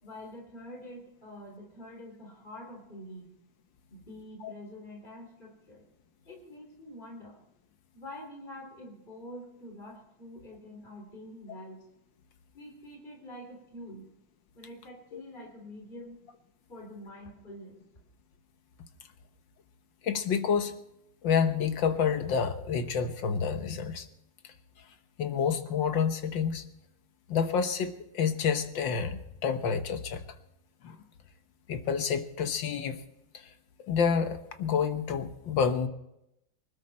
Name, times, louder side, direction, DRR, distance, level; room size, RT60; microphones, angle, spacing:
voice 1, 0.0-3.4 3.9-5.8 6.3-7.4 7.9-11.8 12.5-14.1 14.5-16.2 16.7-17.8, left 1 dB, 25° left, 0 dB, 3.8 m, -46 dB
voice 2, 20.0-20.8 21.2-24.1 25.2-26.6 27.3-30.2 30.8-31.0 31.7-33.0 33.9-35.9, left 6 dB, 75° left, 8 dB, 1.8 m, -28 dB
24.0 x 12.5 x 4.3 m, 0.82 s
omnidirectional pair, 2.1 m